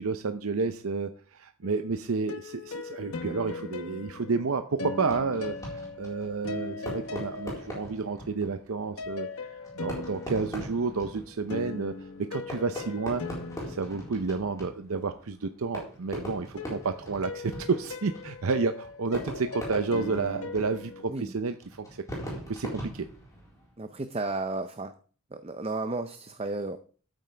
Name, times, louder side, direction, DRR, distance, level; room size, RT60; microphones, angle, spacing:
voice 1, 0.0-9.3 9.7-11.9 12.3-13.2 13.7-22.0 22.5-23.1, right 4 dB, 70° right, 8 dB, 0.6 m, -30 dB
sound 1, 1.6-8.2 9.0-14.9 16.6-21.0, left 4 dB, 75° left, 1.1 m, -40 dB
Fireworks, 5.0-23.8, equal, 15° left, 4.2 m, -42 dB
voice 2, 23.8-24.9 25.3-26.8, right 2 dB, 25° right, 9 dB, 0.6 m, -33 dB
13.0 x 9.1 x 3.4 m, 0.40 s
head